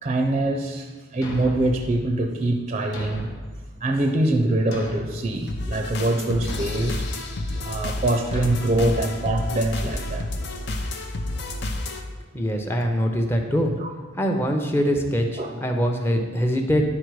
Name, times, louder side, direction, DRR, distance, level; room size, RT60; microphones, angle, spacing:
voice 1, 0.0-3.3 3.8-7.1 7.6-10.2 13.8-13.9 15.4-15.5, right 1 dB, 30° right, 4 dB, 0.5 m, -24 dB
Thump thud, 1.2-1.8 2.9-3.5 4.7-5.3 6.5-6.9 8.3-8.7, left 1 dB, 90° left, 1.2 m, -35 dB
sound 1, 5.5-12.0, left 1 dB, 60° left, 0.7 m, -30 dB
voice 2, 12.3-13.7 14.2-16.8, equal, 10° left, 3 dB, 0.7 m, -23 dB
10.5 x 4.3 x 4.7 m, 1.3 s
head